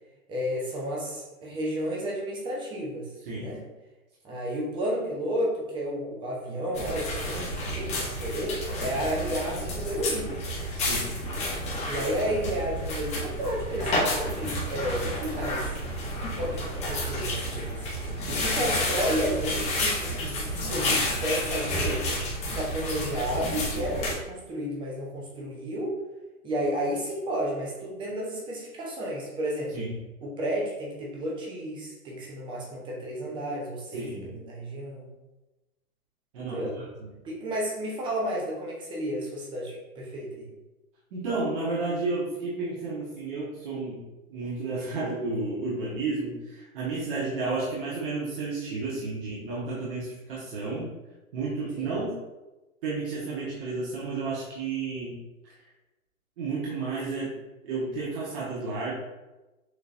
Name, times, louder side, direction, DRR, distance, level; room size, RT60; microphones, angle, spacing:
voice 1, 0.3-3.1 3.4-3.6 4.2-10.3 11.8-15.7 16.4-17.9 18.3-22.0 22.5-25.9 26.4-29.8 30.2-35.1 36.4-36.8 37.2-40.5 51.8-51.9, equal, 10° right, -3 dB, 0.7 m, -32 dB
sound 1, 6.7-24.1, left 1 dB, 15° left, 1.1 m, -30 dB
voice 2, 10.7-11.1 18.3-18.5 29.7-29.9 33.9-34.3 36.3-36.9 41.1-44.0 44.3-50.9 51.3-52.1 52.8-55.2 55.4-55.5 56.4-57.3 57.6-58.9, right 3 dB, 40° right, -7 dB, 1.3 m, -32 dB
6.5 x 3.0 x 2.6 m, 1.1 s
hypercardioid pair, 135°, 43 cm